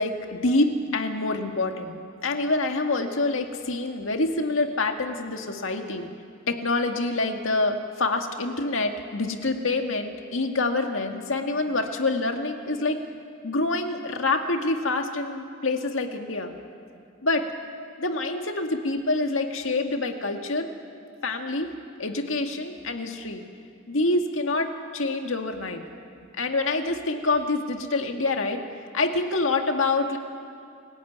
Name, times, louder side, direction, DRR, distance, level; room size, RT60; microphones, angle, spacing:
voice 1, 0.0-2.0 2.2-6.1 6.5-13.0 13.4-16.5 17.2-17.5 18.0-20.7 21.2-21.7 22.0-23.4 23.9-25.8 26.4-28.6 28.9-30.2, left 2 dB, 75° left, 5 dB, 1.9 m, -26 dB
27.0 x 15.0 x 9.3 m, 2.4 s
head